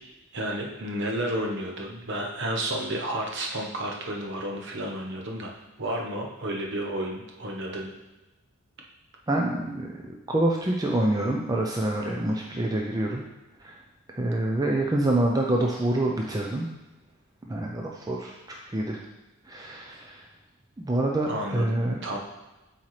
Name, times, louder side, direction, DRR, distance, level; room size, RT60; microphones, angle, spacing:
voice 1, 0.3-5.5 5.8-7.9 21.3-22.2, right 1 dB, 55° right, 0 dB, 0.9 m, -31 dB
voice 2, 9.3-13.2 13.6-13.8 14.1-16.7 17.5-18.3 18.7-19.0 19.5-20.2 20.8-22.0, right 1 dB, 15° right, -1 dB, 0.5 m, -26 dB
7.8 x 4.3 x 3.2 m, 1.1 s
head